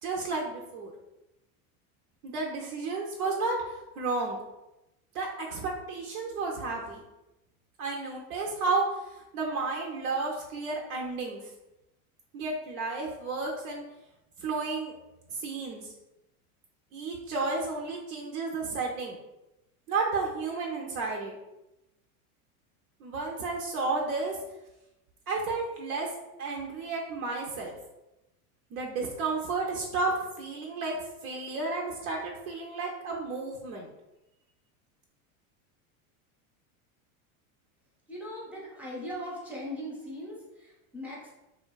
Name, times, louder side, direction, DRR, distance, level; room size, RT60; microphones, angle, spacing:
voice 1, 0.0-0.9 2.2-4.4 5.1-7.0 7.8-11.5 12.3-13.8 14.4-14.9 15.3-15.9 16.9-19.2 19.9-21.4 23.0-24.4 25.3-26.1 26.4-27.8 28.7-31.0 31.2-33.9, right 3 dB, 85° right, -1 dB, 0.6 m, -32 dB
voice 2, 38.1-41.3, equal, 5° right, -4 dB, 0.5 m, -39 dB
2.6 x 2.1 x 2.2 m, 0.94 s
supercardioid pair, 115°, 43 cm